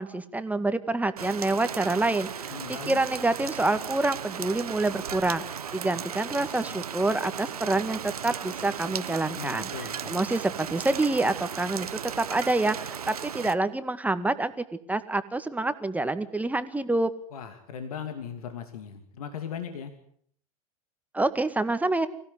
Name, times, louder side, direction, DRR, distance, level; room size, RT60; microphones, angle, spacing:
voice 1, 0.0-2.5 2.9-5.4 5.7-9.7 10.1-14.5 14.9-17.1 21.1-22.1, right 2 dB, 10° right, 11 dB, 2.0 m, -27 dB
Rain, 1.2-13.5, right 8 dB, 85° right, 1.1 m, -36 dB
voice 2, 2.5-3.0 9.4-10.2 17.3-19.9, left 7 dB, 75° left, 8 dB, 2.7 m, -38 dB
25.0 x 16.5 x 9.8 m, 0.63 s
hypercardioid pair, 90°, 19 cm